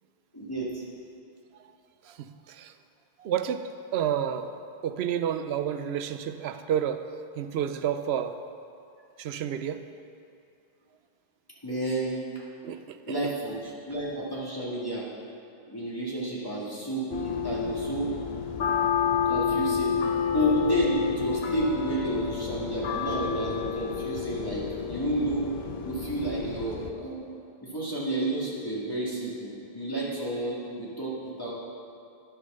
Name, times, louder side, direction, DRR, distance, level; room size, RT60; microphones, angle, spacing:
voice 1, 0.3-0.8 11.6-12.2 13.1-13.6 13.9-15.0 15.7-18.1 19.3-20.0 20.3-25.5 25.8-27.2 27.6-31.5, right 1 dB, 20° left, -8 dB, 2.1 m, -31 dB
voice 2, 2.0-2.7 3.2-4.5 4.8-7.0 7.4-8.4 9.2-9.8 12.6-13.3, right 9 dB, 90° right, 10 dB, 0.8 m, -30 dB
sound 1, 17.1-26.9, left 7 dB, 75° left, 1.0 m, -30 dB
10.5 x 6.4 x 6.6 m, 2.5 s
omnidirectional pair, 1.0 m